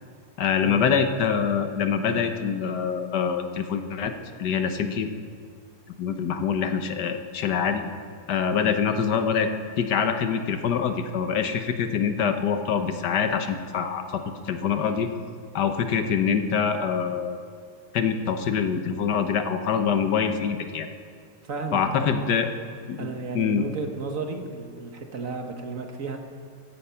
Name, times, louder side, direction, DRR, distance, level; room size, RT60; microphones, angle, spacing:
voice 1, 0.4-4.1 4.4-5.1 6.0-7.8 8.3-9.5 9.8-15.1 15.5-17.4 17.9-20.9 21.7-22.5 22.9-23.7, left 7 dB, 75° left, 7 dB, 1.6 m, -25 dB
voice 2, 21.5-22.4 23.0-26.2, right 3 dB, 50° right, 4 dB, 1.6 m, -33 dB
16.0 x 14.0 x 5.7 m, 2.1 s
omnidirectional pair, 1.9 m